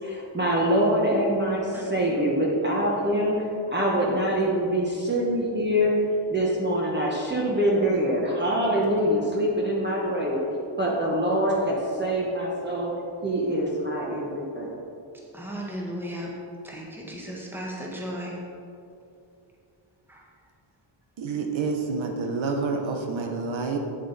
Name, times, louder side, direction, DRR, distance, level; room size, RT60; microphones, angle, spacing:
voice 1, 0.0-3.4 3.7-5.9 6.3-10.4 10.8-12.9 13.2-14.7, equal, 20° right, -4 dB, 1.2 m, -24 dB
voice 2, 15.3-16.3 16.6-18.4 20.1-20.3, equal, 5° right, -3 dB, 1.4 m, -35 dB
voice 3, 21.2-23.8, right 4 dB, 70° right, 3 dB, 0.9 m, -28 dB
8.8 x 7.8 x 4.0 m, 2.7 s
wide cardioid pair, 145°, 48 cm